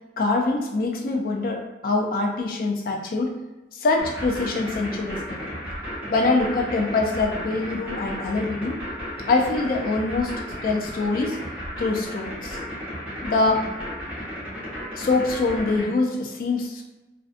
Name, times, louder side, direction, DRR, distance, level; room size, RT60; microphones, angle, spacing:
voice 1, 0.2-3.4 3.7-5.5 6.1-8.8 9.3-11.4 11.8-12.6 13.2-13.7 14.9-16.8, left 3 dB, 50° left, 1 dB, 0.4 m, -24 dB
sound 1, 4.0-15.9, equal, 10° right, 0.8 m, -34 dB
2.5 x 2.2 x 2.5 m, 1.1 s
head